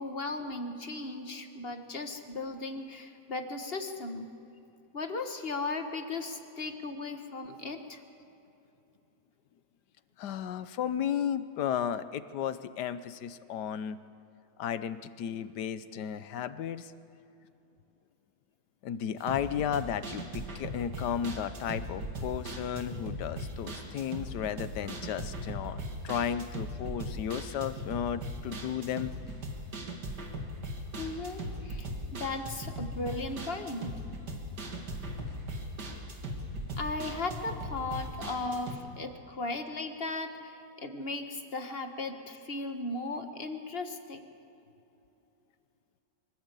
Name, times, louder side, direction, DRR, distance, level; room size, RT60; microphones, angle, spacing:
voice 1, 0.0-4.3 4.9-8.0 31.0-33.9 36.8-44.2, left 3 dB, 40° left, 6 dB, 1.6 m, -37 dB
voice 2, 10.2-14.0 14.6-16.9 18.8-29.1, left 9 dB, 90° left, 13 dB, 1.4 m, -34 dB
sound 1, 19.2-38.7, equal, 85° right, 2.7 m, -39 dB
sound 2, 28.8-36.1, right 1 dB, 25° right, 6.9 m, -56 dB
24.0 x 15.5 x 8.3 m, 2.9 s
omnidirectional pair, 1.7 m